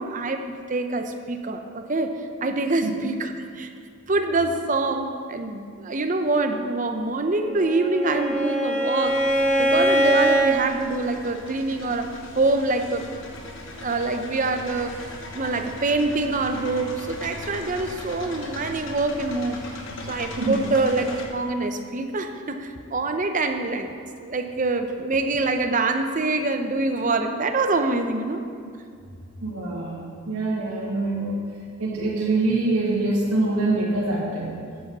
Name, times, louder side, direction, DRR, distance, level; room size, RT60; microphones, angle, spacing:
voice 1, 0.0-3.7 4.1-13.1 13.8-15.0 15.3-19.6 20.1-23.9 24.2-28.4, right 3 dB, 35° right, 7 dB, 0.6 m, -25 dB
Bowed string instrument, 7.4-10.6, right 1 dB, 35° left, 0.9 m, -22 dB
sound 1, 9.0-21.3, left 2 dB, 60° left, 1.2 m, -39 dB
voice 2, 29.4-31.4 31.8-34.5, right 2 dB, 80° right, -6 dB, 1.9 m, -24 dB
13.5 x 8.6 x 4.1 m, 2.2 s
head